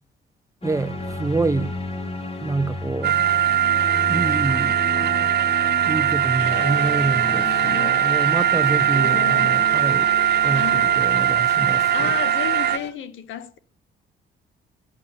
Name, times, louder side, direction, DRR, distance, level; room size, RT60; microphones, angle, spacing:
sound 1, 0.6-12.2, left 2 dB, 30° left, 2.9 m, -34 dB
voice 1, 0.6-1.7 2.4-3.2 4.1-4.8 5.9-10.1 10.4-10.6 11.0-12.1, right 3 dB, 15° right, 1.2 m, -26 dB
sound 2, 3.0-12.8, right 10 dB, 55° right, 0.7 m, -20 dB
voice 2, 6.4-8.0 8.9-9.8 10.5-11.0 11.9-13.6, left 9 dB, 80° left, 1.6 m, -34 dB
sound 3, 6.5-12.9, left 7 dB, 60° left, 3.1 m, -38 dB
15.5 x 8.7 x 8.7 m
cardioid pair, 90°, 20 cm